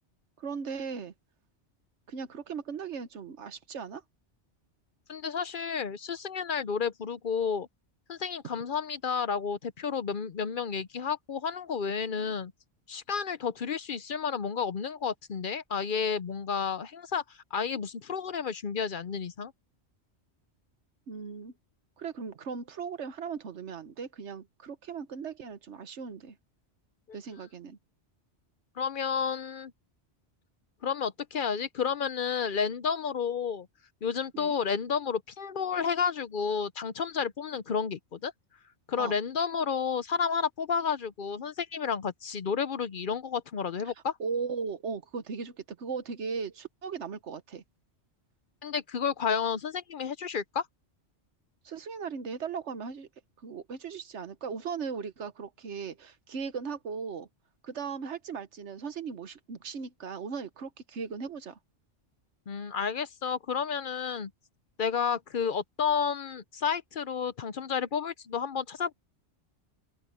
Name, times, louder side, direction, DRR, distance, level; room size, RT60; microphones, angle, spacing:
voice 1, 0.4-1.1 2.1-4.0 21.1-21.5 22.0-26.4 27.1-27.8 34.3-34.5 39.0-39.1 44.2-47.6 51.6-53.1 53.4-57.3 57.6-61.6, right 5 dB, 80° right, 1.4 m, -37 dB
voice 2, 5.1-7.7 8.1-12.5 12.9-17.2 17.5-19.5 28.8-29.7 30.8-33.7 34.0-38.3 38.9-44.2 48.6-50.7 62.5-64.3 64.8-69.0, left 6 dB, 55° left, 0.8 m, -31 dB
open air
omnidirectional pair, 1.2 m